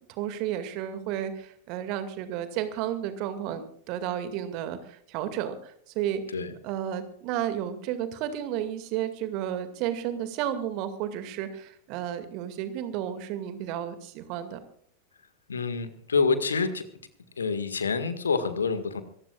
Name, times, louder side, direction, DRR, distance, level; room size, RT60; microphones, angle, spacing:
voice 1, 0.1-6.2 6.6-14.6, right 10 dB, 45° right, 10 dB, 2.2 m, -32 dB
voice 2, 15.5-16.8 17.4-19.0, left 4 dB, 70° left, 11 dB, 1.8 m, -27 dB
26.5 x 15.0 x 2.4 m, 0.63 s
figure-of-eight pair, 90°, 0 cm